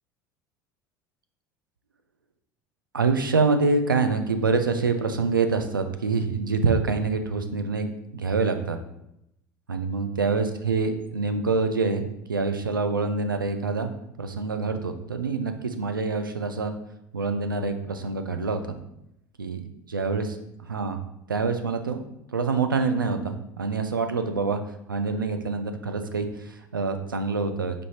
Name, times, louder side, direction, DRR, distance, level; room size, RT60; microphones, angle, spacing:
voice 1, 2.9-8.8 9.7-13.9 14.2-16.8 17.1-18.6 19.4-20.2 20.7-21.0 21.3-22.0 22.3-24.6 24.9-27.9, right 4 dB, 90° right, 7 dB, 0.4 m, -26 dB
5.1 x 3.3 x 2.8 m, 0.82 s
figure-of-eight pair, 70°, 11 cm